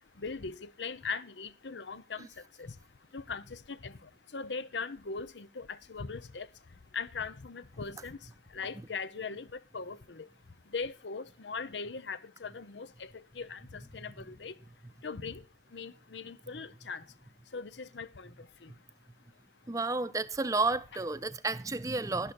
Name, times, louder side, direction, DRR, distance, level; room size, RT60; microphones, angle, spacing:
voice 1, 0.2-2.3 2.6-2.7 3.1-6.5 6.9-8.2 8.5-10.3 10.7-14.5 15.0-15.4 15.7-17.0 17.5-18.7, left 5 dB, 85° left, 0.8 m, -40 dB
voice 2, 19.7-22.3, right 3 dB, 20° right, 0.6 m, -31 dB
11.5 x 11.0 x 4.3 m
head